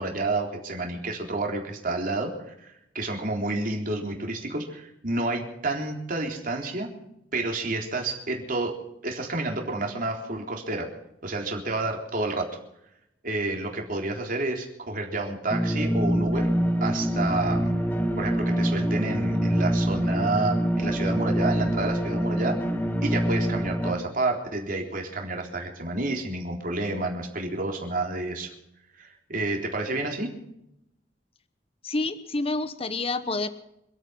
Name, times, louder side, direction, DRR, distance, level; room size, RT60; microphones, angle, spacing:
voice 1, 0.0-6.9 7.3-8.8 9.0-10.9 11.2-12.5 13.2-16.5 16.8-17.7 18.2-22.6 23.0-28.5 29.0-30.3, right 2 dB, 50° right, 2 dB, 3.8 m, -30 dB
sound 1, 15.5-23.9, equal, 10° left, 1.9 m, -25 dB
voice 2, 31.8-33.5, left 2 dB, 35° left, 12 dB, 1.0 m, -28 dB
27.0 x 9.1 x 5.9 m, 0.81 s
head